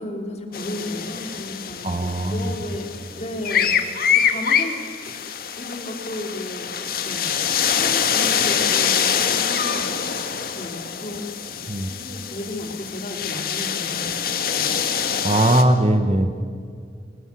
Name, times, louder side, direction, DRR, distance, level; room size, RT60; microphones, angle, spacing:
voice 1, 0.0-2.9 3.1-4.7 5.0-5.1 5.6-6.7 7.0-9.9 10.5-14.3 14.5-14.7, left 1 dB, 35° left, 3 dB, 3.2 m, -34 dB
sound 1, 0.5-15.6, left 7 dB, 55° left, 1.8 m, -25 dB
voice 2, 1.8-2.5 11.7-11.9 15.2-16.3, right 1 dB, 35° right, 8 dB, 1.3 m, -19 dB
25.0 x 21.0 x 8.4 m, 2.2 s
head